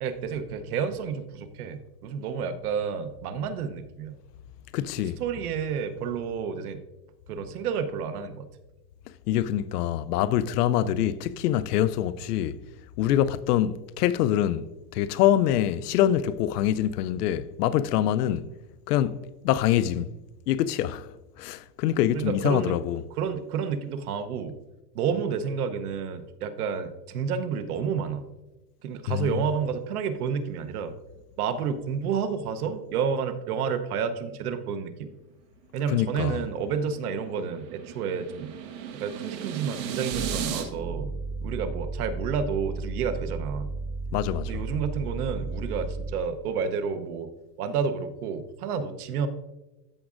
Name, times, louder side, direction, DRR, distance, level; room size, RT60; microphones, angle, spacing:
voice 1, 0.0-4.1 5.0-6.8 7.3-8.5 22.1-22.8 23.1-24.6 24.9-28.3 28.8-30.9 31.4-35.1 35.7-38.5 38.9-41.1 41.4-43.7 44.5-47.3 47.6-49.3, right 6 dB, 65° right, 0.9 m, -30 dB
voice 2, 4.7-5.2 9.3-12.6 13.0-14.6 14.9-18.5 18.9-20.1 20.5-21.1 21.4-23.0 29.1-29.4 35.9-36.4 44.1-44.6, left 11 dB, 75° left, 0.5 m, -25 dB
sound 1, 36.5-40.6, right 9 dB, 90° right, 1.4 m, -35 dB
sound 2, 40.1-46.3, right 3 dB, 10° left, 0.7 m, -34 dB
14.0 x 6.1 x 2.5 m
supercardioid pair, 175°, 48 cm